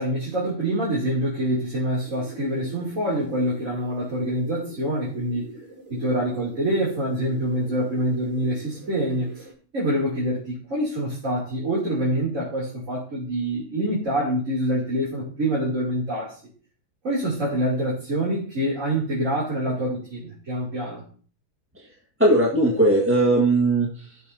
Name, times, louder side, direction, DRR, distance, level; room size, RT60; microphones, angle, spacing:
voice 1, 0.0-5.5 5.9-9.4 9.7-16.4 17.0-21.0, right 1 dB, 35° right, -7 dB, 3.4 m, -26 dB
sound 1, 2.0-9.5, equal, 80° right, 5.8 m, -44 dB
voice 2, 22.2-24.2, right 2 dB, 5° right, -3 dB, 1.4 m, -19 dB
18.0 x 6.4 x 2.8 m, 0.42 s
omnidirectional pair, 2.3 m